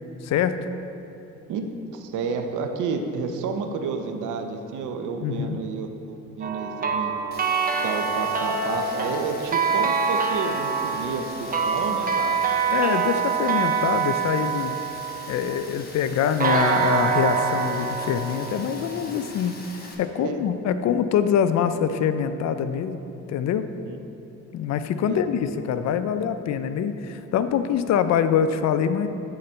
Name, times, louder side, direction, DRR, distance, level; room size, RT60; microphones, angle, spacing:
voice 1, 0.2-0.6 5.2-5.6 12.7-14.8 15.3-23.0 23.3-23.7 24.5-29.1, left 8 dB, 60° left, 11 dB, 0.4 m, -24 dB
voice 2, 1.9-7.1 7.8-12.4 20.1-20.6 23.9-24.0 25.1-25.2, right 5 dB, 85° right, 5 dB, 0.6 m, -30 dB
sound 1, 6.4-15.6 16.4-19.3, right 6 dB, 30° right, 0.6 m, -25 dB
Rain, 7.3-19.9, left 2 dB, 30° left, 1.1 m, -43 dB
8.5 x 3.9 x 4.3 m, 2.8 s
cardioid pair, 90°, 30 cm